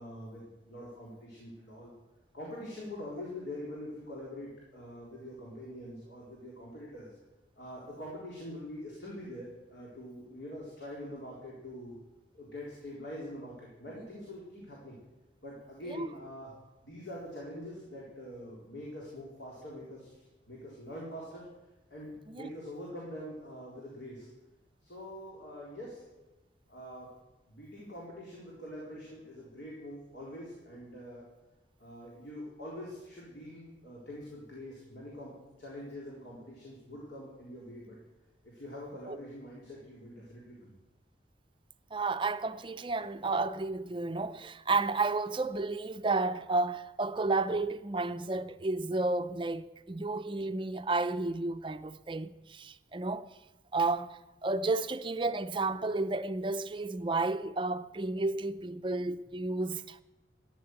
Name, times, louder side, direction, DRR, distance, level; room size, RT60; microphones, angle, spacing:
voice 1, 0.0-1.9 2.3-7.1 7.6-11.9 12.3-15.0 15.4-16.5 16.8-21.4 21.9-24.3 24.8-26.0 26.7-27.1 27.5-31.2 31.8-38.0 38.4-40.7, left 1 dB, 75° left, 4.1 m, -44 dB
voice 2, 41.9-53.3 53.7-60.0, right 3 dB, 25° right, 0.5 m, -32 dB
14.0 x 10.5 x 8.0 m
head